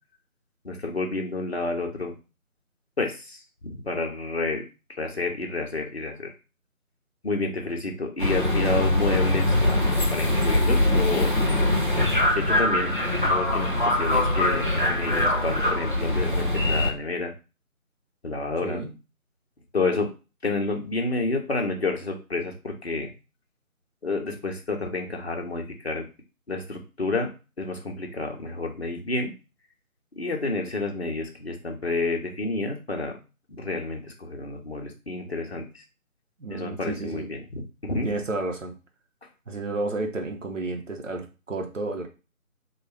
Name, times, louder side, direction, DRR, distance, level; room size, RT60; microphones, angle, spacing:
voice 1, 0.6-2.1 3.0-4.7 5.0-6.3 7.2-9.8 10.1-11.4 12.3-12.9 13.3-17.3 18.2-18.8 19.7-20.1 20.4-23.1 24.0-26.1 26.5-29.3 30.1-33.2 33.5-35.8 36.5-38.2, left 3 dB, 45° left, 1 dB, 0.9 m, -29 dB
sound 1, 8.2-16.9, left 1 dB, 40° right, 0.5 m, -23 dB
voice 2, 15.2-15.5 18.6-18.9 36.4-37.3 38.0-38.8 39.5-42.1, right 2 dB, 60° right, 4 dB, 0.9 m, -31 dB
4.3 x 2.4 x 3.3 m, 0.31 s
figure-of-eight pair, 165°, 43 cm